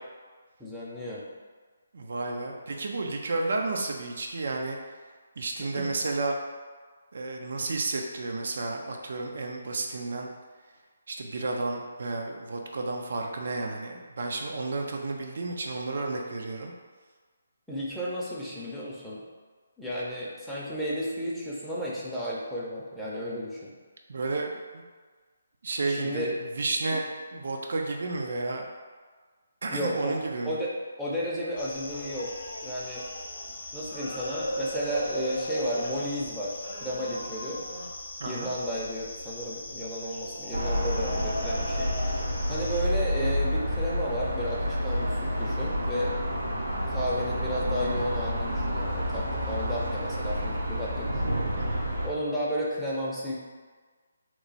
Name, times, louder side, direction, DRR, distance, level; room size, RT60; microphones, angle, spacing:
voice 1, 0.6-1.2 5.7-5.9 17.7-19.2 19.8-23.7 25.9-26.3 29.7-30.2 30.4-30.7 31.0-32.3 32.6-33.0 33.7-37.6 38.2-46.2 46.9-51.3 52.0-53.3, equal, ahead, -9 dB, 0.6 m, -33 dB
voice 2, 1.9-4.8 5.4-6.4 7.1-10.3 11.1-16.7 24.1-24.8 25.6-27.0 27.3-28.7 29.6-30.6 38.2-38.5 51.6-51.9, right 3 dB, 60° right, 2 dB, 0.4 m, -32 dB
sound 1, 31.6-42.8, equal, 50° left, 0.6 m, -37 dB
sound 2, 40.5-52.1, equal, 80° right, 0.8 m, -29 dB
3.0 x 2.2 x 4.0 m, 1.5 s
figure-of-eight pair, 150°, 0 cm